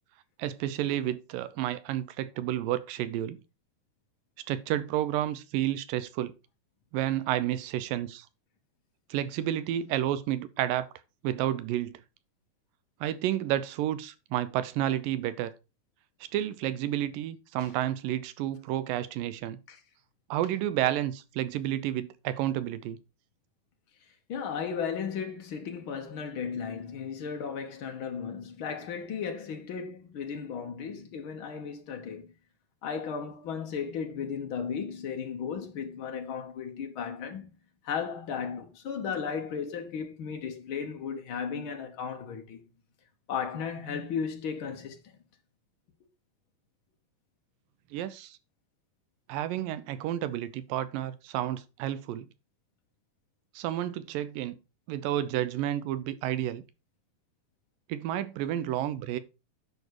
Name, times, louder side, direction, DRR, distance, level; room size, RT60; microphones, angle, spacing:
voice 1, 0.4-3.4 4.5-6.3 6.9-8.3 9.1-10.9 11.2-12.0 13.0-15.5 16.3-19.6 20.3-23.0 47.9-48.4 49.3-52.3 53.6-54.6 54.9-56.6 57.9-59.2, right 12 dB, 80° right, 2.4 m, -30 dB
voice 2, 24.3-32.3 32.8-37.5 37.8-42.6 43.3-45.0, left 6 dB, 80° left, 1.1 m, -35 dB
11.0 x 5.1 x 4.7 m
omnidirectional pair, 4.0 m